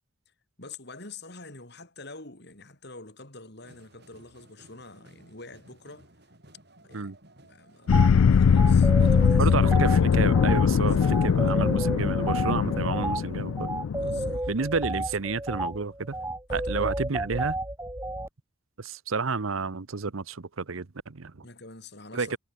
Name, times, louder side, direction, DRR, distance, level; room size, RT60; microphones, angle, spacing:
voice 1, 0.6-6.1 6.8-7.1 7.4-9.6 10.8-11.3 14.0-14.5 16.5-16.9 21.4-22.4, left 3 dB, 55° left, 4.7 m, -46 dB
sound 1, 3.6-10.1, right 1 dB, 55° right, 7.9 m, -57 dB
sound 2, 7.9-14.4, left 6 dB, 85° left, 0.4 m, -21 dB
sound 3, 7.9-8.1 8.6-18.3, right 1 dB, 15° right, 1.6 m, -32 dB
voice 2, 9.4-13.7 14.5-16.1 16.5-17.6 18.8-21.4 22.1-22.4, right 4 dB, 85° right, 0.9 m, -30 dB
head